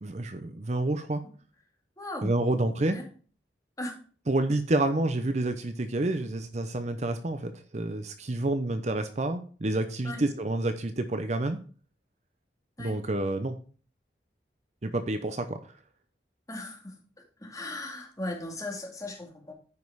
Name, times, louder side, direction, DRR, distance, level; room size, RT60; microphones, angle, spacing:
voice 1, 0.0-1.2 2.2-3.0 4.3-11.6 12.8-13.6 14.8-15.6, right 2 dB, 40° right, 9 dB, 0.6 m, -29 dB
voice 2, 2.0-2.3 2.9-3.0 3.8-3.9 10.0-10.2 12.8-13.0 16.5-17.0 17.4-19.5, left 2 dB, 20° left, 0 dB, 2.1 m, -37 dB
9.5 x 5.3 x 4.7 m, 0.42 s
head